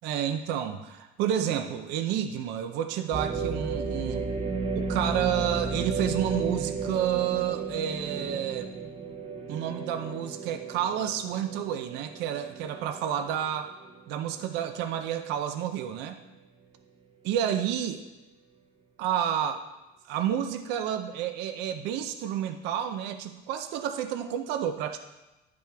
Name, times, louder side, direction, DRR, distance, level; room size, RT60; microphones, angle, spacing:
voice 1, 0.0-4.2 4.7-8.7 9.5-13.7 14.1-16.2 17.2-18.0 19.0-19.6 20.0-25.0, right 10 dB, 65° right, 7 dB, 0.6 m, -30 dB
sound 1, 3.1-13.1 13.5-13.6 14.3-14.7, right 4 dB, 30° right, 0.8 m, -33 dB
10.5 x 5.2 x 3.4 m, 1.0 s
cardioid pair, 145°, 19 cm